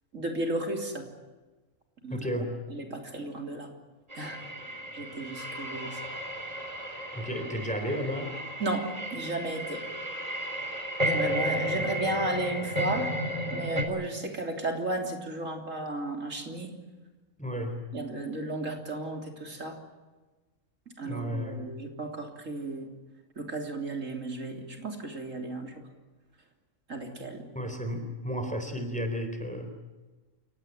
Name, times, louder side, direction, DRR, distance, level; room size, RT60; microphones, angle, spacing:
voice 1, 0.1-1.1 2.0-2.4 2.7-3.7 4.2-4.4 4.9-6.0 8.6-9.9 11.0-13.1 13.5-16.8 17.9-19.8 21.0-22.9 23.4-25.7 26.9-27.5, right 2 dB, 80° right, 3 dB, 3.8 m, -34 dB
voice 2, 2.1-2.5 7.1-8.4 17.4-17.8 21.0-21.7 27.5-29.7, equal, 5° left, 6 dB, 4.1 m, -33 dB
sound 1, 4.1-13.8, equal, 30° right, 3.9 m, -33 dB
29.0 x 18.0 x 9.2 m, 1.2 s
omnidirectional pair, 1.3 m